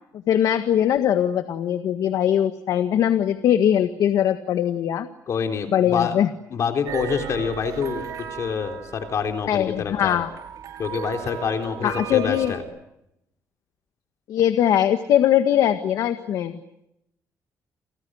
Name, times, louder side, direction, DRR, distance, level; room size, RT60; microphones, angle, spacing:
voice 1, 0.3-5.1 5.7-6.3 9.5-10.3 11.8-12.6 14.3-16.6, left 10 dB, 80° left, 9 dB, 1.7 m, -21 dB
voice 2, 5.3-6.2 6.5-8.0 8.3-10.2 10.8-12.6, left 6 dB, 55° left, 5 dB, 3.8 m, -26 dB
sound 1, 6.8-12.6, right 8 dB, 75° right, 5.9 m, -36 dB
30.0 x 29.5 x 6.5 m, 0.83 s
cardioid pair, 130°, 6 cm